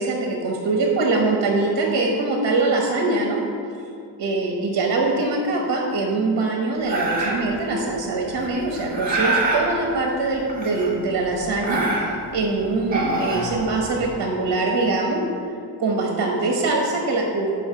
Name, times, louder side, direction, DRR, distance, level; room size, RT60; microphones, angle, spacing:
voice 1, 0.0-3.4 4.2-15.2 15.8-17.5, right 3 dB, 60° right, 0 dB, 1.1 m, -23 dB
sound 1, 6.9-7.5 8.4-9.6 10.5-11.1 11.4-12.3 12.8-14.0, right 2 dB, 20° right, 1.8 m, -25 dB
5.6 x 5.5 x 6.6 m, 2.4 s
cardioid pair, 125°, 41 cm